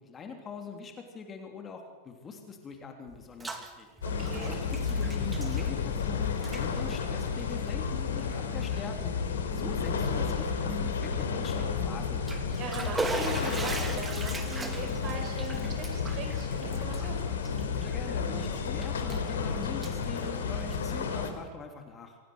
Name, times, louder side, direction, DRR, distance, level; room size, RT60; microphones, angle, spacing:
voice 1, 0.0-3.9 4.4-9.2 9.5-12.2 17.8-22.2, left 5 dB, 20° left, 4 dB, 3.1 m, -42 dB
Bathtub (filling or washing), 3.1-3.7 4.0-6.1 6.3-6.6 7.4-7.5 8.2-8.3 8.7-8.8 12.0-18.1 18.5-19.3 19.6-21.0, right 3 dB, 10° right, 2.7 m, -38 dB
sound 1, 4.0-21.3, left 5 dB, 65° left, 3.3 m, -32 dB
voice 2, 4.0-4.5 9.5-9.8 12.6-17.2, right 4 dB, 35° right, 4 dB, 6.0 m, -40 dB
sound 2, 10.4-17.0, equal, 75° right, 6.8 m, -48 dB
26.0 x 17.5 x 8.0 m, 1.2 s
figure-of-eight pair, 90°, 0 cm